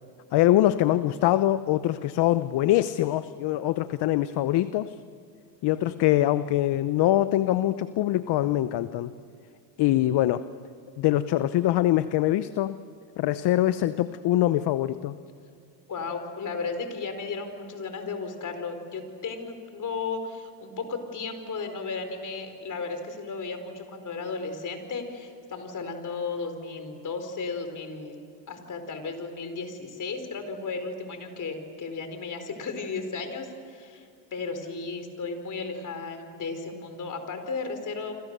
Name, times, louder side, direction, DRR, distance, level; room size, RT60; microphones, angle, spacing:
voice 1, 0.3-4.9 5.6-9.1 9.8-10.4 11.0-12.8 13.2-15.2, left 14 dB, 55° left, 14 dB, 0.9 m, -23 dB
voice 2, 15.9-28.2 28.5-38.1, left 4 dB, 35° left, 7 dB, 4.6 m, -34 dB
29.0 x 26.0 x 6.8 m, 2.3 s
supercardioid pair, 95°, 50 cm